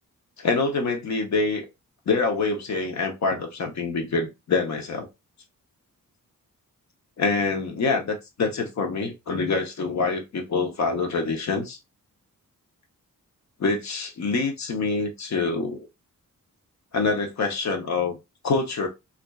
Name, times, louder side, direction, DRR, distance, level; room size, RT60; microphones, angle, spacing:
voice 1, 0.4-1.7 2.1-5.1 7.2-11.8 13.6-15.9 16.9-18.2 18.4-18.9, left 4 dB, 55° left, 0.7 m, -25 dB
2.5 x 2.2 x 2.3 m
wide cardioid pair, 105°, 34 cm